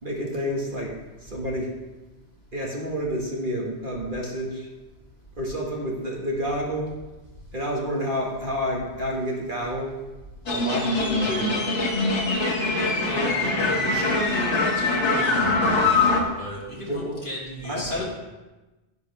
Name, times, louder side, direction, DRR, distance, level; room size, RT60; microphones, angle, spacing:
voice 1, 0.0-0.9 1.2-1.7 2.5-4.6 5.4-6.9 7.5-10.0 10.5-11.6 16.9-17.1 17.7-18.0, equal, 45° right, -2 dB, 1.8 m, -29 dB
sound 1, 10.5-16.2, left 3 dB, 75° left, 1.8 m, -23 dB
voice 2, 13.0-18.0, equal, 35° left, -6 dB, 3.2 m, -35 dB
11.0 x 11.0 x 3.4 m, 1.1 s
omnidirectional pair, 1.2 m